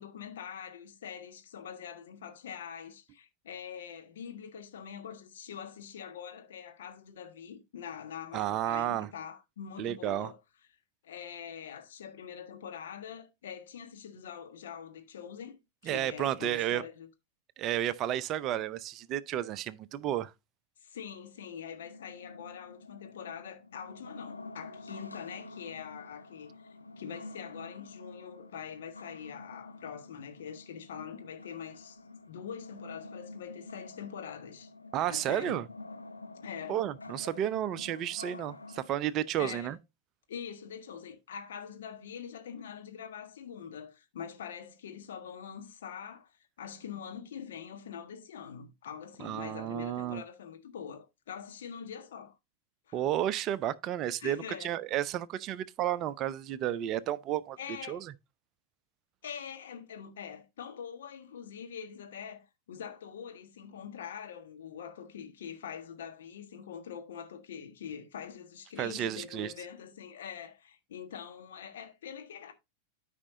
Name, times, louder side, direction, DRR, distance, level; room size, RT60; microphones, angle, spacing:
voice 1, 0.0-10.4 11.0-17.1 20.8-26.5 27.0-32.0 32.2-34.7 35.1-35.6 36.4-36.8 39.4-39.7 40.3-52.3 52.9-53.0 54.2-54.8 57.6-58.0 59.2-72.5, left 8 dB, 60° left, 1.5 m, -44 dB
voice 2, 8.3-9.1 9.8-10.3 15.8-16.8 17.6-20.3 34.9-35.7 36.7-39.8 49.2-50.2 52.9-57.6 57.9-58.1 68.8-69.5, right 11 dB, 35° right, 0.5 m, -32 dB
sound 1, 21.7-38.9, left 2 dB, 80° left, 0.9 m, -48 dB
13.0 x 5.0 x 2.6 m
figure-of-eight pair, 90°, 0 cm